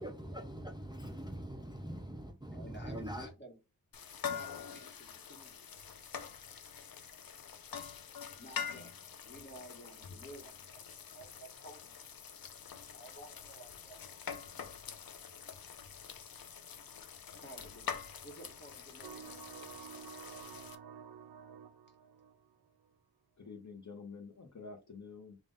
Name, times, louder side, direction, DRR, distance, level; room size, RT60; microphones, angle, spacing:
voice 1, 0.0-3.3, right 1 dB, 10° right, 0.5 m, -43 dB
voice 2, 2.5-3.6 4.0-5.8 8.3-8.9 9.2-10.9 11.1-12.0 12.9-14.0 17.3-20.2, right 1 dB, 30° left, 1.3 m, -54 dB
sound 1, 3.9-20.7, left 7 dB, 70° left, 0.6 m, -45 dB
sound 2, 19.0-22.9, right 7 dB, 90° right, 0.5 m, -50 dB
voice 3, 23.4-25.4, left 4 dB, 50° left, 0.9 m, -48 dB
3.6 x 2.5 x 3.9 m
wide cardioid pair, 85°, 36 cm